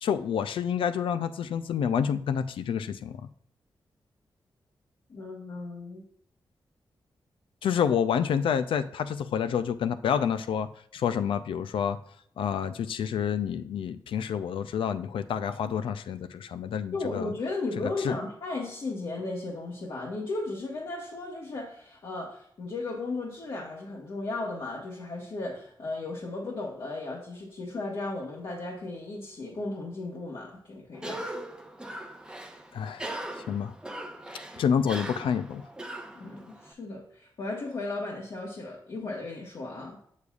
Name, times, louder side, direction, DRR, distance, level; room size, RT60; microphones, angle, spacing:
voice 1, 0.0-3.3 7.6-12.0 12.4-17.3 17.8-18.2 32.7-33.0 33.4-33.7 34.6-35.6, left 8 dB, 90° left, 12 dB, 0.4 m, -28 dB
voice 2, 5.1-6.0 16.9-31.3 36.1-40.0, left 2 dB, 65° left, -4 dB, 1.3 m, -35 dB
Cough, 30.9-36.7, right 1 dB, 10° right, 0.7 m, -40 dB
6.9 x 6.4 x 2.4 m, 0.69 s
cardioid pair, 75°, 9 cm